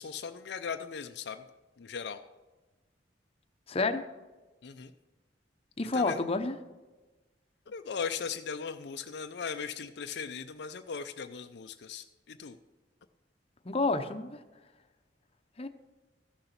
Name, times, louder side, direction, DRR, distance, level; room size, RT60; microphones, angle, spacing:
voice 1, 0.0-1.4 1.8-2.2 4.6-4.9 5.9-6.2 7.7-12.6, left 6 dB, 65° left, 8 dB, 0.5 m, -38 dB
voice 2, 3.7-4.0 5.8-6.5 13.6-14.4 15.6-15.7, left 3 dB, 35° left, 7 dB, 0.8 m, -29 dB
14.5 x 6.7 x 5.9 m, 1.2 s
head